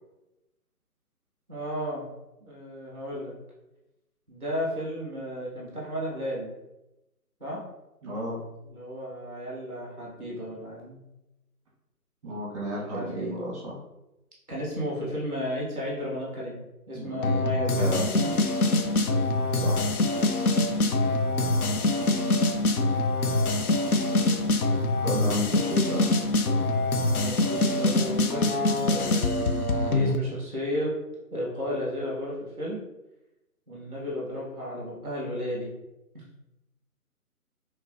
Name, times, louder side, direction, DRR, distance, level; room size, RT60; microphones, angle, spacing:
voice 1, 1.5-2.1 2.4-3.3 4.3-6.5 7.4-7.6 8.6-11.0 12.9-13.3 14.5-18.0 21.4-21.9 27.1-28.4 28.9-30.9 31.3-32.8 33.7-35.7 36.1-36.2, equal, 5° left, -6 dB, 0.9 m, -33 dB
voice 2, 8.0-8.4 12.2-13.7 16.9-17.3 17.8-18.2 18.9-19.2 19.6-19.9 25.0-26.2, equal, 20° right, -5 dB, 1.3 m, -33 dB
sound 1, 17.2-30.2, left 2 dB, 70° left, 0.7 m, -24 dB
5.2 x 3.1 x 2.6 m, 0.94 s
figure-of-eight pair, 150°, 46 cm